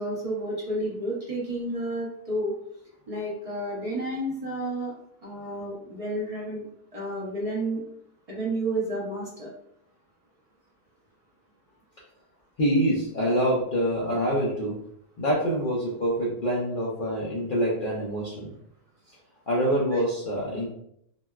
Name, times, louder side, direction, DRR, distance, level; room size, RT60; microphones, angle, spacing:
voice 1, 0.0-2.5 3.1-4.9 5.2-6.7 6.9-7.8 8.3-9.5 19.9-20.0, right 1 dB, 65° right, -5 dB, 0.3 m, -31 dB
voice 2, 12.6-14.8 15.2-18.5 19.5-20.7, equal, 75° left, -5 dB, 0.4 m, -25 dB
3.8 x 2.2 x 2.2 m, 0.73 s
omnidirectional pair, 1.6 m